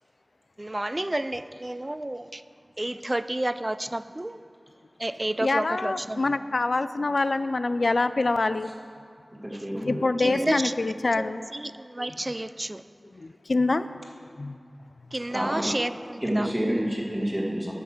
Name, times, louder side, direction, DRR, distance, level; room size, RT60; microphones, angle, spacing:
voice 1, 0.6-2.4 2.8-4.4 5.0-6.2 10.2-10.8 11.2-12.8 15.1-16.5, right 1 dB, 30° right, 13 dB, 0.3 m, -30 dB
voice 2, 5.4-8.7 9.8-11.5 13.1-13.9 14.4-14.6, left 3 dB, 75° left, 13 dB, 0.3 m, -25 dB
voice 3, 9.4-10.5 15.3-15.7 16.2-17.7, equal, 10° right, -3 dB, 1.7 m, -29 dB
9.3 x 5.8 x 7.3 m, 2.3 s
wide cardioid pair, 50°, 0 cm